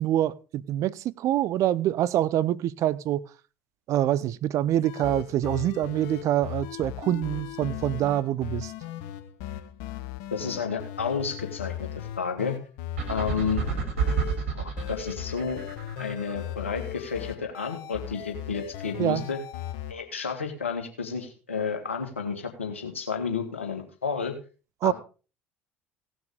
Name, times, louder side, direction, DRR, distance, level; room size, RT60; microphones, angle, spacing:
voice 1, 0.0-3.2 3.9-8.7 19.0-19.3 24.8-24.9, right 12 dB, 55° right, 0.7 m, -25 dB
sound 1, 4.7-14.5 14.8-19.9, left 12 dB, 65° left, 1.0 m, -38 dB
voice 2, 10.3-12.6 13.1-13.6 14.5-15.6 16.0-19.4 19.9-24.3 24.8-24.9, left 6 dB, 90° left, 2.1 m, -31 dB
sound 2, 13.0-16.4, right 6 dB, 80° right, 3.3 m, -29 dB
17.0 x 6.3 x 4.9 m
hypercardioid pair, 65°, 7 cm